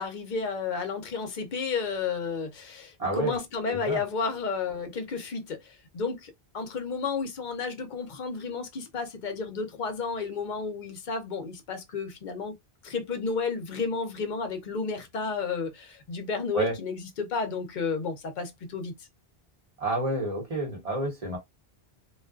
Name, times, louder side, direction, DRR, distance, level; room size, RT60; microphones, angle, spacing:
voice 1, 0.0-12.6 12.8-18.9, left 5 dB, 55° left, 0.7 m, -32 dB
voice 2, 3.0-3.3 3.7-4.0 16.5-16.7 19.8-21.4, right 2 dB, 35° right, 1.1 m, -29 dB
2.4 x 2.3 x 2.3 m
omnidirectional pair, 1.1 m